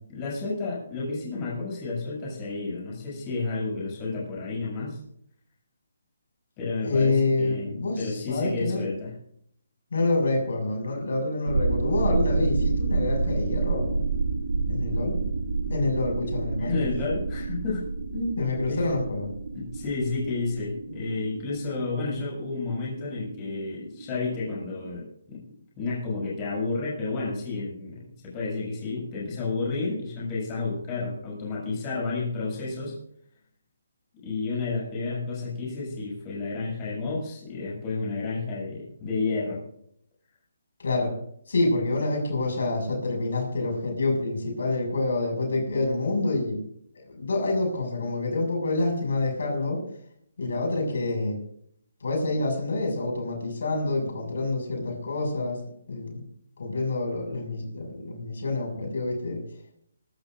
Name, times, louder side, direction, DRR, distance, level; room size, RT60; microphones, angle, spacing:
voice 1, 0.1-5.0 6.6-9.1 16.6-17.8 18.1-18.9 19.5-25.4 25.8-33.0 34.2-39.6, left 3 dB, 20° left, -5 dB, 7.4 m, -31 dB
voice 2, 6.8-8.9 9.9-14.1 14.7-15.2 15.7-16.8 18.4-19.3 40.8-41.1 41.5-46.6 46.9-49.8 50.4-51.4 52.0-55.6 55.9-56.2 56.6-59.4, left 2 dB, 70° left, 1 dB, 6.4 m, -27 dB
sound 1, 11.5-24.8, right 3 dB, 90° right, 2.8 m, -29 dB
24.5 x 13.0 x 2.6 m, 0.68 s
hypercardioid pair, 170°, 0 cm